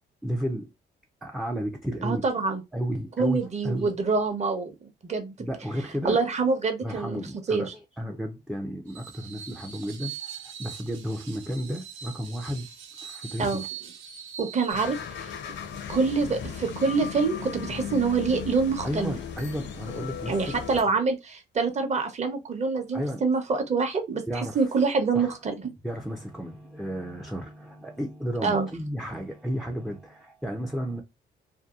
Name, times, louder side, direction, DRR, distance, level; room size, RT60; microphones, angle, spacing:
voice 1, 0.2-0.7 1.2-2.3 2.7-3.9 5.4-6.2 6.8-7.7 8.0-12.7 13.0-13.7 15.6-15.7 18.8-20.6 22.9-23.2 24.3-24.7 25.1-25.4 25.8-31.0, equal, ahead, 0.3 m, -33 dB
voice 2, 2.0-2.6 3.2-4.7 5.0-5.3 6.0-7.2 7.5-7.7 13.4-13.6 14.4-15.3 15.9-19.1 20.3-25.7 28.4-28.7, right 4 dB, 35° right, 0.7 m, -26 dB
Screech, 8.9-14.9, right 8 dB, 85° right, 0.6 m, -42 dB
sound 1, 14.7-20.8, left 7 dB, 65° left, 0.5 m, -36 dB
2.7 x 2.2 x 2.3 m
cardioid pair, 90°, 20 cm